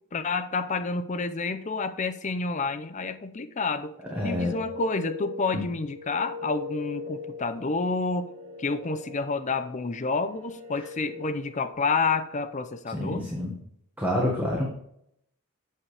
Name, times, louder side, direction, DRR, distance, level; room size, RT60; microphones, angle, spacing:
voice 1, 0.1-3.9 4.2-8.3 8.6-13.2, left 4 dB, 35° left, 9 dB, 0.5 m, -29 dB
sound 1, 3.9-11.7, left 4 dB, 75° right, 1.7 m, -41 dB
voice 2, 4.1-4.5 12.9-13.5 14.0-14.7, left 1 dB, 10° right, -3 dB, 1.4 m, -27 dB
8.4 x 7.1 x 3.4 m, 0.74 s
head